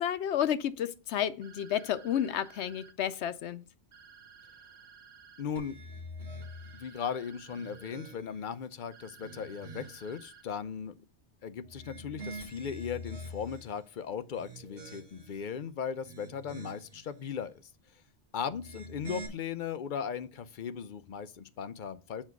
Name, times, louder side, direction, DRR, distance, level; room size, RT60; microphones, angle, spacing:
voice 1, 0.0-3.7, left 10 dB, 85° left, 1.0 m, -31 dB
sound 1, 1.4-2.9 3.9-5.4 6.4-7.9 8.9-10.4, right 6 dB, 85° right, 1.1 m, -55 dB
voice 2, 5.4-5.8 6.7-10.9 11.4-17.6 18.3-22.2, left 7 dB, 55° left, 0.7 m, -37 dB
sound 2, 5.6-6.9 7.4-8.5 9.0-10.1 11.6-13.8 14.3-15.4 15.9-17.0 18.5-19.3, equal, 40° right, 2.1 m, -45 dB
8.0 x 4.4 x 5.9 m
omnidirectional pair, 1.1 m